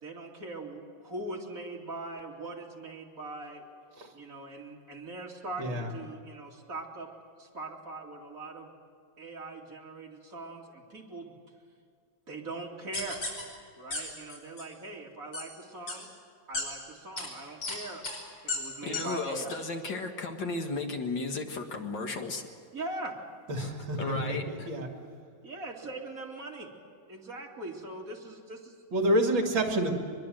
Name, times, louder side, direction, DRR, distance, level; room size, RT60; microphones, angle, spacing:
voice 1, 0.0-3.7 4.1-7.1 7.4-8.7 9.2-11.3 12.3-13.2 13.8-16.1 16.5-18.0 18.4-19.6 22.7-23.2 25.4-26.7 27.1-28.8, right 2 dB, 40° right, -1 dB, 3.1 m, -41 dB
voice 2, 5.6-5.9 23.5-24.9 28.9-29.9, right 1 dB, 65° right, 3 dB, 3.0 m, -28 dB
sound 1, 12.9-13.4 13.9-14.0 14.3-14.6 15.3-15.4 15.9-16.0 16.5-16.6 17.2-17.3 17.6-17.8 18.0-18.2 18.5-18.6 18.9-19.0 19.5-19.6, left 3 dB, 85° left, 6.1 m, -33 dB
voice 3, 18.8-22.4 23.6-23.7 24.0-24.7, left 3 dB, 60° left, 4 dB, 2.2 m, -34 dB
23.5 x 21.5 x 7.8 m, 2.2 s
omnidirectional pair, 2.3 m